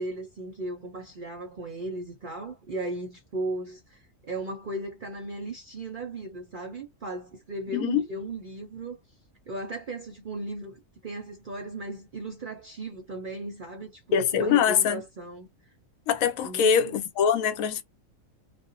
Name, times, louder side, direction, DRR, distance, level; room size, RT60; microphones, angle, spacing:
voice 1, 0.0-9.0 9.5-15.5 16.4-17.0, right 2 dB, 50° right, 0.6 m, -36 dB
voice 2, 7.7-8.0 14.1-15.0 16.1-17.8, left 7 dB, 80° left, 1.0 m, -23 dB
2.5 x 2.1 x 2.4 m
omnidirectional pair, 1.4 m